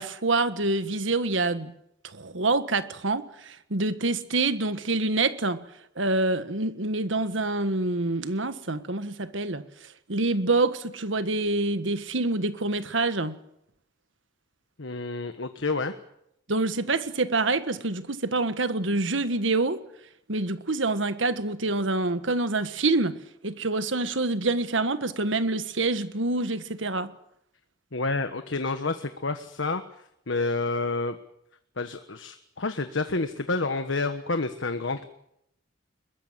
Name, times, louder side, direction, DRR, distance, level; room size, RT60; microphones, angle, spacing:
voice 1, 0.0-1.7 2.1-5.6 6.0-9.6 10.1-13.3 16.5-19.8 20.3-23.2 23.4-27.1, right 2 dB, 75° right, 1.5 m, -26 dB
voice 2, 14.8-15.9 27.9-29.8 30.3-31.2 31.8-35.1, left 3 dB, 75° left, 1.4 m, -29 dB
22.0 x 21.5 x 7.6 m
head